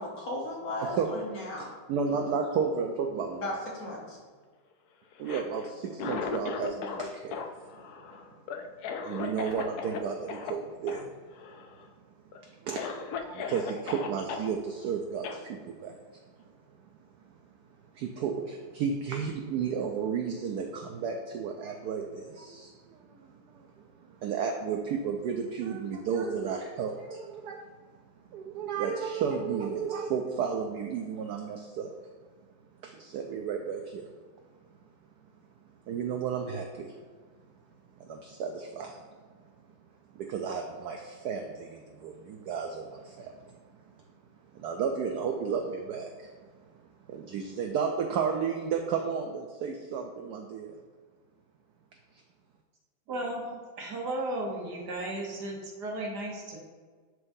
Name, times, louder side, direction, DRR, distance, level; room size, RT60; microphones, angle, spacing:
voice 1, 0.0-1.7 3.4-4.2, left 1 dB, 55° left, -2 dB, 1.3 m, -36 dB
voice 2, 1.6-3.5 5.2-7.4 9.0-11.1 12.4-16.0 17.9-23.7 24.1-27.6 28.3-31.9 32.8-34.0 35.9-36.9 38.0-39.0 40.1-43.6 44.5-46.3 47.1-50.8, right 6 dB, 80° right, 3 dB, 0.9 m, -33 dB
Cough, 5.1-7.0 7.3-10.0 10.3-10.5 10.9-11.0 11.3-11.8 12.3-12.4 12.7-14.5 15.2-15.4, left 6 dB, 85° left, 0.8 m, -37 dB
voice 3, 53.1-56.6, right 1 dB, 60° right, -1 dB, 1.4 m, -35 dB
10.5 x 3.7 x 2.6 m, 1.5 s
omnidirectional pair, 2.2 m